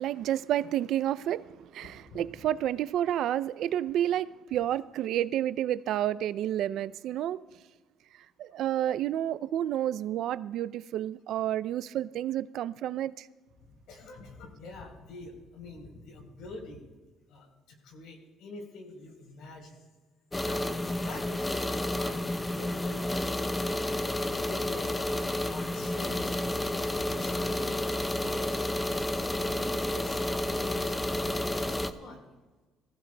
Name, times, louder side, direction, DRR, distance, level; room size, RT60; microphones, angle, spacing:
voice 1, 0.0-7.4 8.1-13.3, right 11 dB, 60° right, 0.3 m, -30 dB
voice 2, 2.1-2.5 13.7-16.8 17.3-19.8 20.4-23.3 24.3-25.0 25.2-28.7 29.3-32.2, left 2 dB, 70° left, 3.7 m, -46 dB
sound 1, 20.3-31.9, left 1 dB, 10° left, 0.5 m, -31 dB
23.5 x 15.5 x 2.2 m
cardioid pair, 155°, 0 cm